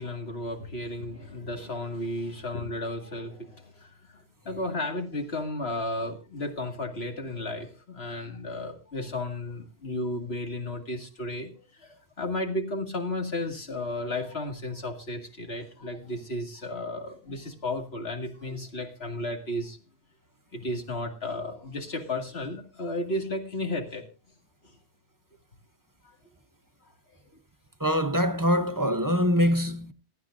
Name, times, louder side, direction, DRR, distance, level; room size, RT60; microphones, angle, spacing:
voice 1, 0.0-11.5 11.8-19.8 20.5-24.1, left 1 dB, 65° left, 2.5 m, -33 dB
voice 2, 27.8-29.9, equal, 20° right, 0.7 m, -24 dB
28.0 x 9.4 x 2.5 m
omnidirectional pair, 1.1 m